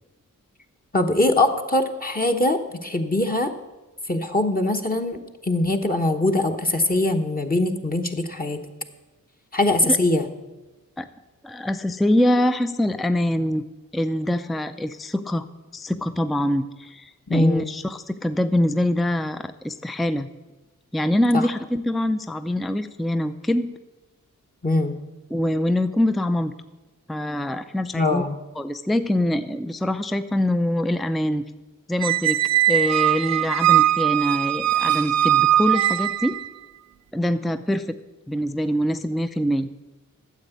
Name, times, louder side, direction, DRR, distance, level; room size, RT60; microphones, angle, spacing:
voice 1, 0.9-3.5 4.1-8.6 9.5-10.3 17.3-17.6 21.3-21.5 24.6-24.9 27.9-28.3, left 2 dB, 25° left, 3 dB, 1.1 m, -22 dB
voice 2, 11.4-13.6 13.9-15.5 15.7-20.3 20.9-23.7 25.3-26.5 27.1-28.2 28.6-31.4 31.9-32.4 32.7-36.4 37.1-38.0 38.3-39.7, left 1 dB, ahead, 11 dB, 0.5 m, -24 dB
Squeak, 32.0-36.5, right 12 dB, 55° right, 0.4 m, -20 dB
9.5 x 7.2 x 8.0 m, 1.2 s
cardioid pair, 50°, 33 cm